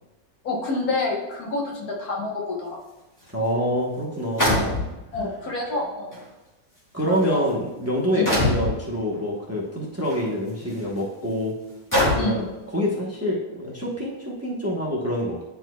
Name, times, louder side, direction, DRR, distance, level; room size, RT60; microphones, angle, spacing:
voice 1, 0.4-2.8 4.5-4.7 5.1-6.2 7.1-7.5 8.2-8.3 12.2-12.4, left 2 dB, 80° left, -2 dB, 1.7 m, -28 dB
sound 1, 3.3-3.4 4.4-5.2 6.1-6.2 7.0-7.2 8.3-8.7 10.0-10.2 10.8-10.9 11.9-12.4, left 1 dB, 15° left, 1.7 m, -22 dB
voice 2, 3.3-4.8 5.2-5.3 6.9-11.5 12.1-12.5 12.7-15.4, equal, 10° right, -4 dB, 0.9 m, -26 dB
9.7 x 4.4 x 2.3 m, 1.0 s
omnidirectional pair, 1.5 m